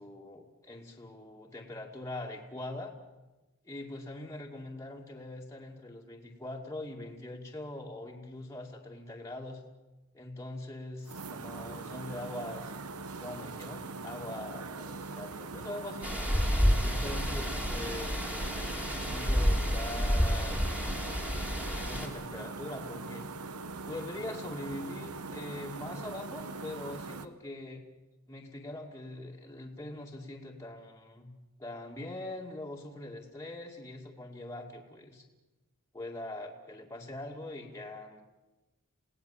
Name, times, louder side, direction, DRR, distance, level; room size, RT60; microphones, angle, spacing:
voice 1, 0.0-2.9 3.6-9.6 10.1-16.2 16.8-20.9 21.7-23.3 23.9-27.8 28.3-31.3 31.6-35.2 35.9-38.2, left 1 dB, 15° left, -2 dB, 2.4 m, -42 dB
sound 1, 11.0-27.3, right 3 dB, 90° right, 1.1 m, -42 dB
sound 2, 16.0-22.1, equal, 5° right, 3.0 m, -29 dB
28.5 x 18.0 x 7.2 m, 1.1 s
head